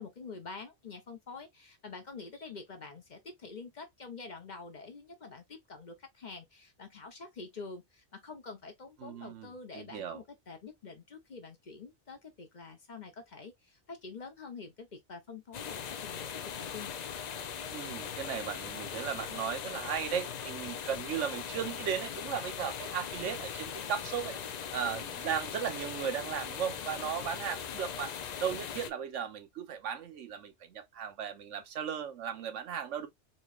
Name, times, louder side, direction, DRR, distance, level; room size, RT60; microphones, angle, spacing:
voice 1, 0.0-17.0, left 4 dB, 45° left, 0.9 m, -46 dB
voice 2, 9.0-10.2 17.7-28.1 28.4-33.1, right 8 dB, 90° right, 1.1 m, -36 dB
sound 1, 15.5-28.9, left 7 dB, 60° left, 0.4 m, -40 dB
4.3 x 3.0 x 2.4 m
omnidirectional pair, 1.2 m